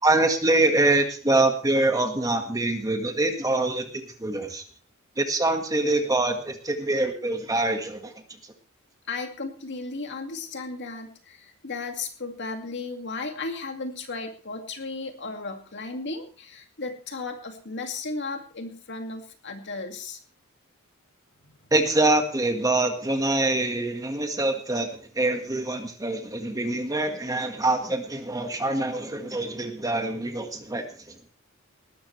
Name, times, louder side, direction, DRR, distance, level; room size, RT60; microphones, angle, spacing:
voice 1, 0.0-4.6 5.2-8.1 21.7-31.1, right 2 dB, 15° right, 5 dB, 1.7 m, -25 dB
voice 2, 9.1-20.2 21.4-21.5, left 3 dB, 55° left, 5 dB, 2.3 m, -35 dB
19.5 x 13.0 x 3.3 m, 0.40 s
head